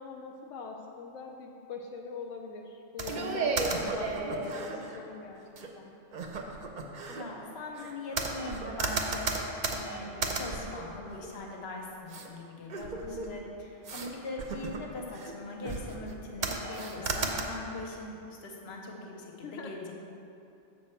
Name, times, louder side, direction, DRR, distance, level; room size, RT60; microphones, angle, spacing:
voice 1, 0.0-5.4 5.8-5.9 13.0-13.4 16.8-17.2 19.4-19.7, left 5 dB, 85° left, 2 dB, 0.9 m, -42 dB
sound 1, 3.0-5.0 5.6-5.7 6.1-7.2 7.8-11.6 12.1-12.3 12.7-13.4 13.8-14.1 14.4-15.3 15.6-16.1 16.4-17.4, right 4 dB, 50° right, 0.7 m, -34 dB
voice 2, 3.3-3.7 7.1-19.9, left 2 dB, 60° left, 0 dB, 1.2 m, -41 dB
7.3 x 6.2 x 4.4 m, 2.8 s
omnidirectional pair, 1.3 m